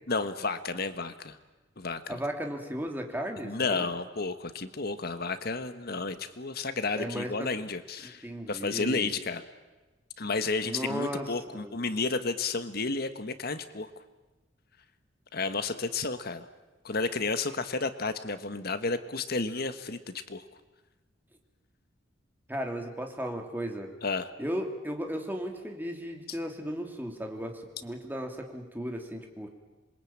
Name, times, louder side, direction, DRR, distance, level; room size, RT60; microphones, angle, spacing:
voice 1, 0.1-1.4 1.8-2.2 3.4-9.4 10.2-13.9 15.3-16.5 16.8-20.4 24.0-24.3, left 3 dB, 55° left, 10 dB, 1.4 m, -32 dB
voice 2, 2.1-3.9 7.0-7.5 8.0-9.2 10.6-11.8 22.5-23.9 24.4-29.5, equal, 10° right, 3 dB, 3.0 m, -35 dB
26.5 x 22.5 x 8.8 m, 1.2 s
head